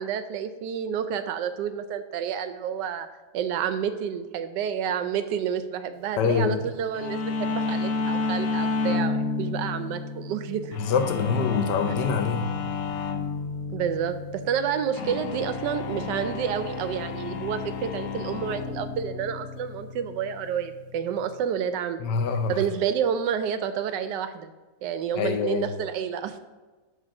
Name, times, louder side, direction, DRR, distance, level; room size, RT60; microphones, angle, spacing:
voice 1, 0.0-3.1 3.3-10.8 13.7-22.0 22.5-24.5 24.8-26.4, right 8 dB, 90° right, 10 dB, 1.2 m, -29 dB
voice 2, 6.2-6.6 10.7-12.5 22.0-22.6 25.2-25.7, left 5 dB, 80° left, 7 dB, 1.3 m, -25 dB
sound 1, 7.0-21.4, left 4 dB, 60° left, 0.9 m, -31 dB
7.4 x 3.2 x 5.8 m, 1.3 s
omnidirectional pair, 1.8 m